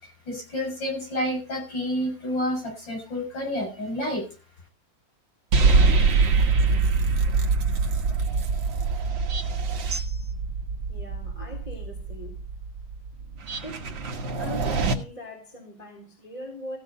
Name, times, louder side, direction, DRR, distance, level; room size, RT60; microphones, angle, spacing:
voice 1, 0.0-4.2, left 1 dB, 65° left, 0 dB, 7.2 m, -29 dB
sound 1, 5.5-14.9, right 4 dB, 70° right, 2.2 m, -24 dB
voice 2, 10.9-12.4 13.6-13.9 14.3-16.8, left 1 dB, 20° left, 1 dB, 3.6 m, -40 dB
15.5 x 6.9 x 5.5 m, 0.34 s
omnidirectional pair, 2.2 m